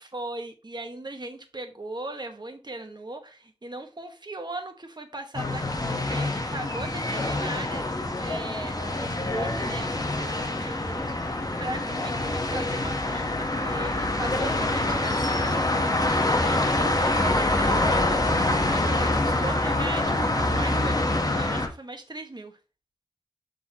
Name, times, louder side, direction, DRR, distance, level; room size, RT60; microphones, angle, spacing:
voice 1, 0.0-15.7 16.3-22.6, right 2 dB, 40° right, 1.4 m, -38 dB
sound 1, 5.3-21.7, left 2 dB, 35° left, 1.2 m, -25 dB
10.5 x 3.9 x 3.0 m
wide cardioid pair, 45°, 11 cm